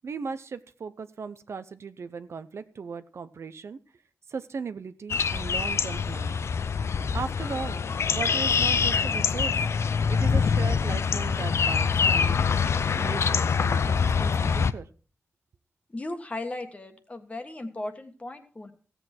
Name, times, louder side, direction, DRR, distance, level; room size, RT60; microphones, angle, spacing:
voice 1, 0.0-3.8 4.3-6.4 7.1-7.8 8.1-9.6 10.1-12.6 12.9-14.9, right 5 dB, 65° right, 11 dB, 0.7 m, -37 dB
sound 1, 5.1-14.7, left 5 dB, 65° left, 0.5 m, -25 dB
voice 2, 15.9-18.7, left 2 dB, 25° left, 6 dB, 1.5 m, -36 dB
15.5 x 8.1 x 4.4 m, 0.40 s
wide cardioid pair, 120°, 5 cm